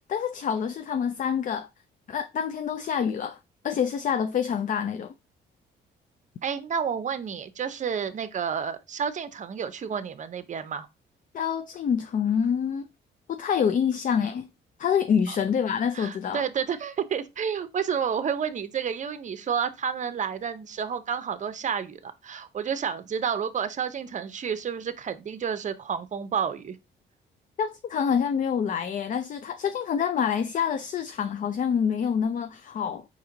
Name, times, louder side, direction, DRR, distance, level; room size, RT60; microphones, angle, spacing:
voice 1, 0.1-1.7 2.1-3.4 3.6-5.1 11.3-12.9 13.3-14.5 14.8-16.4 27.6-33.0, left 7 dB, 40° left, 0.4 m, -26 dB
voice 2, 6.4-10.9 15.3-15.4 15.9-26.8, right 7 dB, 40° right, 0.6 m, -30 dB
4.3 x 2.9 x 3.8 m
cardioid pair, 90°, 20 cm